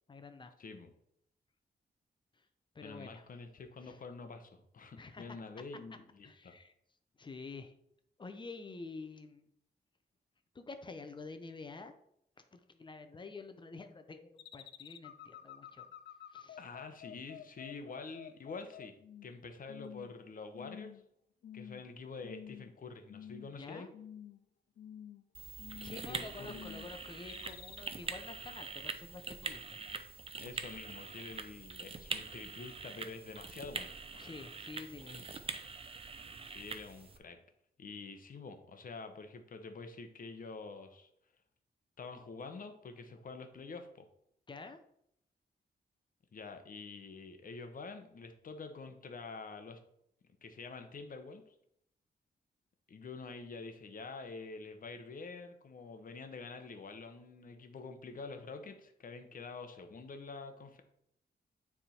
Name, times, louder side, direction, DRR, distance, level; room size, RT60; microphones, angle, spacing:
voice 1, 0.1-0.5 2.3-2.5 2.7-3.3 3.8-4.0 5.0-5.4 6.2-6.7 7.2-7.7 8.2-9.5 10.5-12.0 12.4-15.9 16.3-16.6 23.5-23.9 25.8-29.8 34.2-35.5 44.5-44.8, left 3 dB, 25° left, 8 dB, 0.7 m, -48 dB
voice 2, 0.6-0.9 2.8-6.5 16.6-19.0 19.2-20.9 21.5-23.9 26.1-26.6 30.4-34.3 36.5-37.4 37.8-41.1 42.0-44.1 46.3-49.8 50.4-51.4 52.9-60.8, left 4 dB, 50° left, 6 dB, 1.0 m, -47 dB
sound 1, 14.4-19.4 19.7-20.2 20.5-21.1 21.4-21.8 22.2-22.8 23.1-23.6 23.9-24.4 24.8-25.2 25.6-26.1 26.5-26.9 27.3-27.8, left 10 dB, 80° left, 0.5 m, -50 dB
sound 2, 25.3-37.2, right 4 dB, 30° right, 0.6 m, -44 dB
9.4 x 3.6 x 4.4 m, 0.74 s
wide cardioid pair, 140°, 18 cm